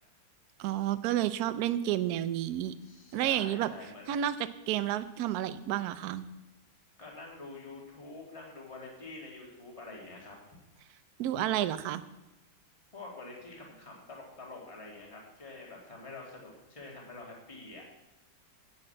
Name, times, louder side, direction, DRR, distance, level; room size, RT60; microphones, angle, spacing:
voice 1, 0.6-2.7 3.1-3.7 4.1-4.4 4.7-6.3 11.2-12.0, right 12 dB, 70° right, 12 dB, 0.9 m, -30 dB
voice 2, 2.8-4.2 7.0-10.4 12.9-17.8, left 2 dB, 15° left, -2 dB, 2.1 m, -47 dB
8.5 x 6.5 x 7.7 m, 1.0 s
omnidirectional pair, 2.1 m